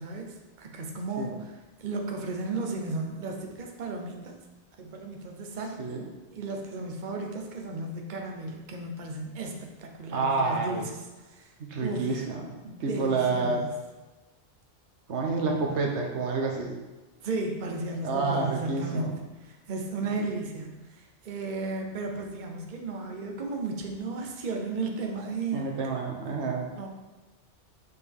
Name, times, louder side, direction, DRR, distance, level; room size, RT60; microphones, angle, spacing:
voice 1, 0.0-4.3 4.8-5.8 6.3-11.5 11.8-12.2 12.6-13.7 17.2-25.7 26.3-26.5 26.7-26.9, right 3 dB, 45° right, 2 dB, 0.9 m, -34 dB
voice 2, 10.1-10.8 11.7-12.5 12.8-13.6 15.1-16.8 18.0-19.1 25.5-26.7, right 4 dB, 80° right, 1 dB, 1.2 m, -28 dB
6.5 x 5.5 x 3.5 m, 1.1 s
omnidirectional pair, 1.2 m